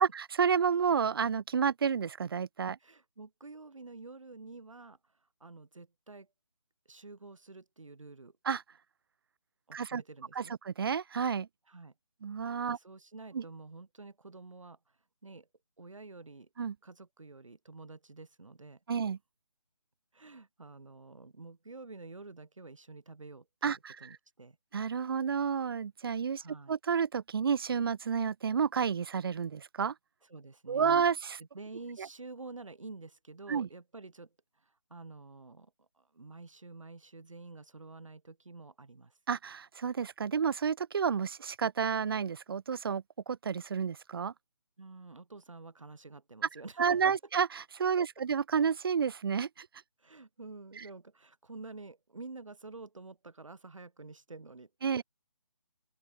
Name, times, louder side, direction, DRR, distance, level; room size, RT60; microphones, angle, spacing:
voice 1, 0.0-2.8 8.4-8.6 9.7-10.0 10.4-11.5 12.2-12.8 13.3-13.4 16.6-16.7 18.9-19.2 23.6-24.2 24.7-29.9 30.7-31.4 32.0-32.1 33.5-33.7 39.3-44.3 46.8-49.7 50.8-50.9 54.8-55.0, right 6 dB, 50° right, 0.4 m, -30 dB
voice 2, 2.8-6.3 6.8-8.4 9.7-10.6 11.7-11.9 12.7-15.5 15.8-16.5 16.8-18.8 20.1-24.6 26.3-26.7 30.2-31.0 31.4-39.2 44.8-47.0 48.2-48.3 50.0-55.0, right 3 dB, 80° right, 3.3 m, -49 dB
open air
figure-of-eight pair, 160°, 16 cm